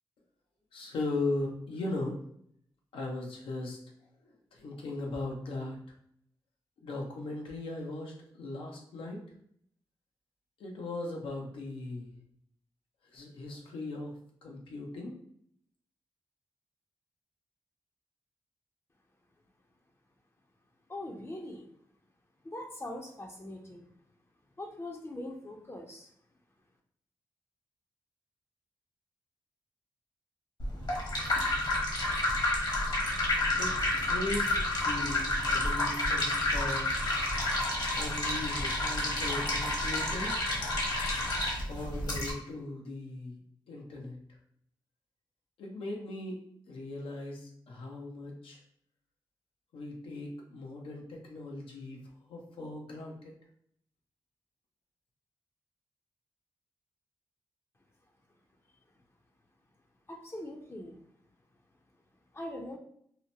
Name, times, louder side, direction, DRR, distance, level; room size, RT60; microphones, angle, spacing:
voice 1, 0.7-2.2 2.9-3.8 4.2-5.8 6.8-9.2 10.6-12.1 13.1-15.2 33.6-33.7 34.1-37.0 37.9-40.4 41.7-43.4 43.7-44.2 45.6-46.4 46.7-48.6 49.7-52.0 52.3-53.3, left 2 dB, 90° left, 0 dB, 0.6 m, -38 dB
voice 2, 20.9-21.7 22.4-23.9 24.6-26.1 60.1-61.0 62.3-62.8, left 1 dB, 30° left, 2 dB, 0.5 m, -41 dB
sound 1, 30.6-42.3, left 1 dB, 55° left, 1.0 m, -30 dB
2.8 x 2.1 x 2.7 m, 0.67 s
cardioid pair, 55°, 9 cm